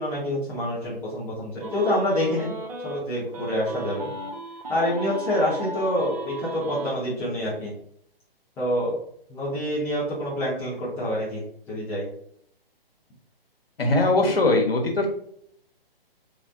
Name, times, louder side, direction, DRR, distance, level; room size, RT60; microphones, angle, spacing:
voice 1, 0.0-2.6 2.8-4.1 4.7-7.7 8.6-8.9 9.3-12.1, equal, 10° left, -8 dB, 0.7 m, -27 dB
sound 1, 1.6-3.0 3.3-6.9, right 1 dB, 40° right, 0.7 m, -36 dB
voice 2, 13.8-15.1, left 2 dB, 70° left, 2 dB, 1.2 m, -20 dB
3.2 x 3.2 x 2.5 m, 0.67 s
figure-of-eight pair, 135°, 30 cm